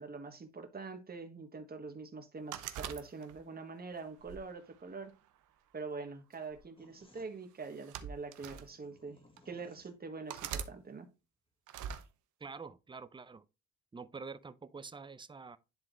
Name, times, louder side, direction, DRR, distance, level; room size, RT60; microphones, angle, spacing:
voice 1, 0.0-5.1 5.7-11.1, right 4 dB, 30° right, 1.6 m, -44 dB
sound 1, 2.5-3.6 4.2-5.4 6.3-6.6 7.6-8.7 9.4-9.5 10.3-10.7 11.7-12.0, right 8 dB, 80° right, 0.9 m, -42 dB
sound 2, 6.8-10.4, left 1 dB, 20° left, 1.8 m, -64 dB
voice 2, 12.4-13.5 13.9-15.6, right 4 dB, 15° right, 0.6 m, -47 dB
10.5 x 3.7 x 3.1 m
cardioid pair, 90°, 30 cm